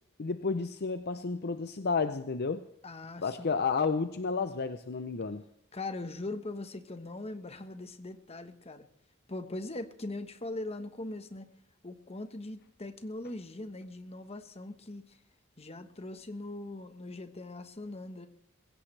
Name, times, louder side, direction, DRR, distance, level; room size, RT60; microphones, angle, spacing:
voice 1, 0.2-2.6 3.2-5.4, left 4 dB, 50° left, 0.6 m, -31 dB
voice 2, 2.8-3.5 5.7-8.9 9.3-11.5 11.8-15.2 15.6-18.3, left 2 dB, 30° left, 1.2 m, -41 dB
22.5 x 16.5 x 3.3 m
head